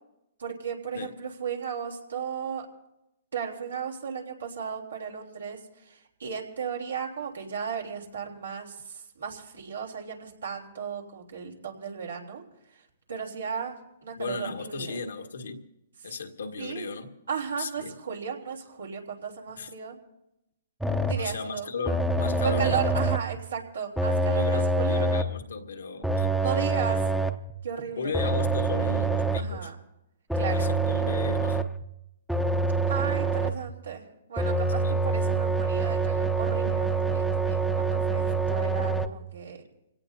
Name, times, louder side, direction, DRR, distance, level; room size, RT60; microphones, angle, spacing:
voice 1, 0.4-2.7 3.3-12.4 12.7-12.8 13.1-13.7 14.0-15.1 16.0-16.1 16.6-16.9 17.3-20.0 21.0-21.7 22.4-25.1 26.4-27.1 27.6-28.3 29.4-29.7 30.3-30.7 32.9-34.0 34.3-39.6, right 7 dB, 90° right, 0 dB, 3.4 m, -35 dB
voice 2, 14.1-15.7 16.0-17.1 17.6-17.9 19.6-19.7 21.2-22.9 24.3-26.3 26.9-27.0 28.0-29.7 30.4-31.7 34.8-34.9 38.4-38.5, left 4 dB, 85° left, 4 dB, 1.6 m, -35 dB
sound 1, 20.8-21.3 21.9-23.4 24.0-25.4 26.0-27.5 28.1-29.6 30.3-31.8 32.3-33.7 34.4-39.1, right 3 dB, ahead, 0.7 m, -26 dB
25.5 x 17.5 x 2.7 m, 0.86 s
hypercardioid pair, 140°, 0 cm